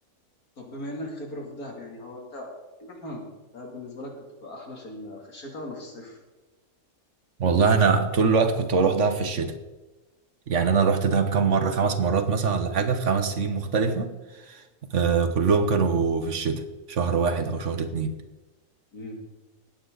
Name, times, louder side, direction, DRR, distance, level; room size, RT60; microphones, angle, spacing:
voice 1, 0.6-2.5 2.8-3.3 3.5-6.2 18.9-19.2, left 1 dB, 85° left, 0 dB, 3.2 m, -38 dB
voice 2, 7.4-9.5 10.5-14.1 14.5-14.6 14.9-16.6 16.9-18.2, right 5 dB, 60° right, 9 dB, 1.3 m, -23 dB
20.0 x 8.7 x 3.9 m, 1.1 s
omnidirectional pair, 1.5 m